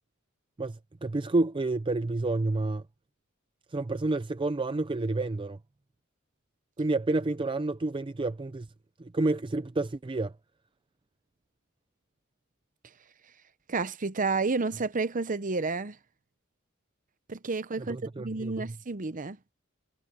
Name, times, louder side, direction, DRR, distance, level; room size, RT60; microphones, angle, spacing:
voice 1, 0.6-2.8 3.7-5.6 6.8-8.7 9.0-10.3 17.8-18.7, right 2 dB, 25° right, 0.5 m, -29 dB
voice 2, 13.7-16.0 17.3-19.4, right 3 dB, 40° right, 0.8 m, -30 dB
head